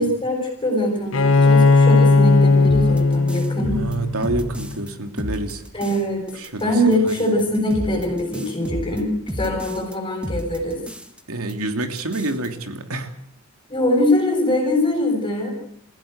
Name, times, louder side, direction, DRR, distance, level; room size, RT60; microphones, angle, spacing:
voice 1, 0.0-3.8 5.7-6.2 6.6-10.8 13.7-15.6, left 1 dB, 20° left, 2 dB, 7.4 m, -22 dB
Bowed string instrument, 1.1-4.7, left 3 dB, 70° left, 1.8 m, -16 dB
sound 1, 2.7-4.9 5.2-6.0 6.3-9.9 10.2-11.2 11.5-11.6 11.8-12.5, equal, 5° right, 1.8 m, -32 dB
voice 2, 3.7-5.6 6.4-7.1 11.3-13.1, right 2 dB, 90° right, 6 dB, 3.0 m, -27 dB
29.0 x 16.0 x 8.1 m, 0.68 s
head